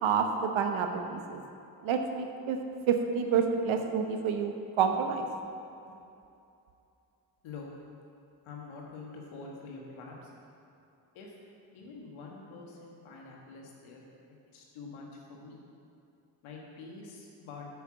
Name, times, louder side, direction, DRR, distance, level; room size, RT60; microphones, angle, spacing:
voice 1, 0.0-1.4 1.8-2.6 2.9-5.3, right 6 dB, 80° right, 5 dB, 0.9 m, -28 dB
voice 2, 8.4-10.3 11.1-11.3 11.7-14.0 14.5-15.6 16.4-17.7, left 4 dB, 90° left, -2 dB, 1.6 m, -46 dB
7.1 x 6.7 x 7.5 m, 2.7 s
supercardioid pair, 45°, 47 cm